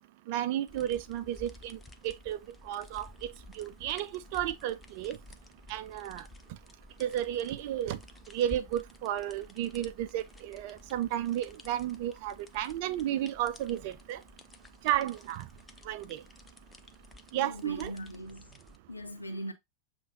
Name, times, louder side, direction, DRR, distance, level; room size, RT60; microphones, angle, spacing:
voice 1, 0.3-1.8 2.0-2.4 2.7-3.3 3.6-5.2 5.7-6.2 7.0-8.0 8.3-14.2 14.8-15.5 15.9-16.2 17.3-17.9, right 12 dB, 50° right, 0.4 m, -33 dB
sound 1, 0.7-18.8, left 2 dB, 15° left, 0.5 m, -53 dB
voice 2, 17.3-18.5 18.9-19.5, equal, 85° left, 0.8 m, -40 dB
7.2 x 2.5 x 2.6 m
figure-of-eight pair, 90°, 0 cm